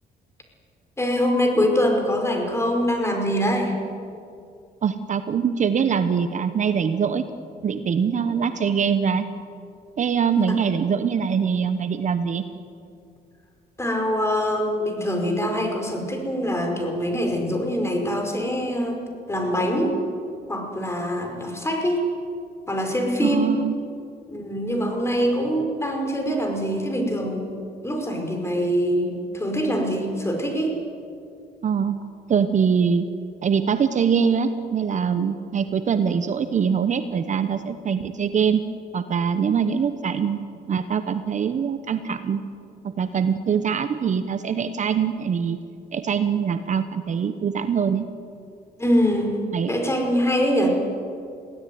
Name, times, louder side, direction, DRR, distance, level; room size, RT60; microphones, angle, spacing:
voice 1, 1.0-3.8 13.8-19.0 19.3-20.0 20.5-22.1 22.7-23.5 24.3-27.6 27.8-30.8 48.8-49.4 49.7-50.7, equal, 15° left, 3 dB, 5.4 m, -24 dB
voice 2, 4.8-7.3 7.6-9.3 10.0-12.4 23.2-23.7 31.6-32.0 32.3-33.1 33.4-38.6 38.9-40.4 40.7-42.4 42.8-45.6 45.9-48.1 49.5-49.7, right 7 dB, 45° right, 10 dB, 1.1 m, -23 dB
22.0 x 16.5 x 9.5 m, 2.4 s
cardioid pair, 85°, 17 cm